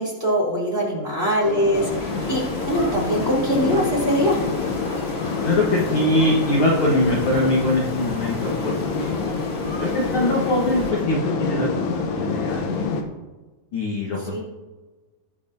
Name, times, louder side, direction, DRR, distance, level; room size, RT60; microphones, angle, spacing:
voice 1, 0.0-4.4 14.3-14.4, equal, 15° right, -6 dB, 2.8 m, -22 dB
sound 1, 1.4-13.0, left 4 dB, 85° left, 3.0 m, -27 dB
sound 2, 1.7-10.9, left 1 dB, 20° left, 2.8 m, -36 dB
voice 2, 5.4-9.2 9.8-12.9 13.7-14.4, left 1 dB, 60° left, -3 dB, 1.3 m, -23 dB
19.5 x 7.4 x 2.8 m, 1.2 s
omnidirectional pair, 4.5 m